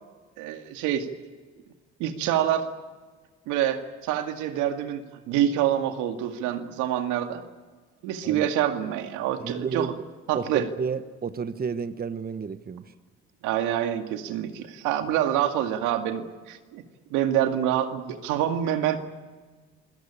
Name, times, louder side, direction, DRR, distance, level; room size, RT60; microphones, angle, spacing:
voice 1, 0.4-1.1 2.0-2.7 3.5-7.4 8.0-9.9 10.3-10.7 13.4-16.8 17.1-19.0, right 11 dB, 80° right, 6 dB, 2.2 m, -26 dB
voice 2, 9.4-10.1 10.3-12.8, right 5 dB, 30° right, 12 dB, 1.2 m, -31 dB
28.0 x 18.0 x 8.8 m, 1.4 s
supercardioid pair, 70°, 30 cm